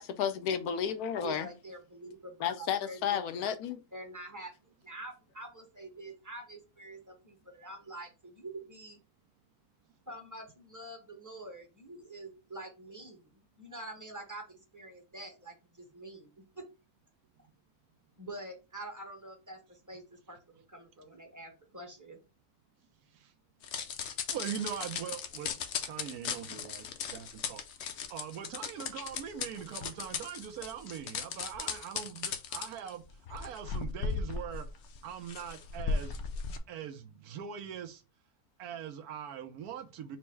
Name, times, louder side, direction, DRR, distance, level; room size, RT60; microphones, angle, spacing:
voice 1, 0.2-1.5 2.4-3.8 27.8-27.9, left 8 dB, 80° left, 1.1 m, -32 dB
voice 2, 1.2-3.3 3.9-9.0 10.1-16.3 16.5-16.6 18.2-22.2, right 1 dB, 15° right, 0.7 m, -46 dB
sound 1, 23.6-36.6, left 5 dB, 65° left, 0.7 m, -37 dB
voice 3, 24.3-25.5 25.8-27.6 28.1-33.0 33.3-34.7 35.0-36.2 36.7-38.0 38.6-40.2, right 8 dB, 80° right, 1.2 m, -41 dB
4.5 x 2.1 x 4.4 m
omnidirectional pair, 1.6 m